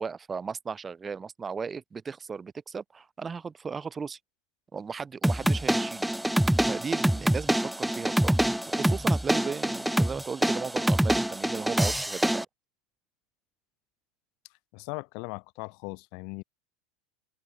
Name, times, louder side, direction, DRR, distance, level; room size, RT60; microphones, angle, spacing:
voice 1, 0.0-4.2 4.7-6.1 6.6-12.4, right 5 dB, 20° right, 5.9 m, -36 dB
sound 1, 5.2-12.4, right 1 dB, ahead, 0.6 m, -25 dB
voice 2, 14.7-16.4, left 33 dB, 60° left, 3.2 m, -39 dB
supercardioid pair, 125°, 0 cm